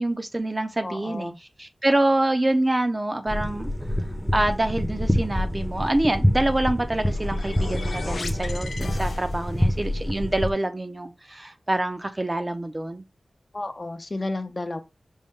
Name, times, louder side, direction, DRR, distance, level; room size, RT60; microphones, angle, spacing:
voice 1, 0.0-3.7 4.3-13.0, right 1 dB, 30° right, 0.6 m, -26 dB
voice 2, 0.8-1.4 13.5-14.8, left 2 dB, 40° left, 0.7 m, -32 dB
sound 1, 3.3-10.5, equal, 5° left, 0.8 m, -26 dB
sound 2, 6.7-9.7, left 3 dB, 85° left, 0.6 m, -38 dB
5.3 x 2.2 x 3.6 m
wide cardioid pair, 65°, 0 cm